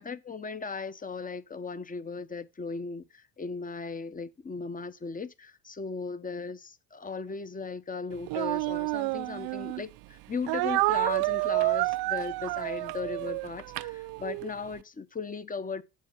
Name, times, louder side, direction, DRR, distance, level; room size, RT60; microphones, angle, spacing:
voice 1, 0.0-15.8, left 4 dB, 20° left, 0.9 m, -37 dB
Speech, 8.3-9.8 10.5-14.5, right 21 dB, 60° right, 0.5 m, -29 dB
7.6 x 4.6 x 7.2 m
supercardioid pair, 70°, 44 cm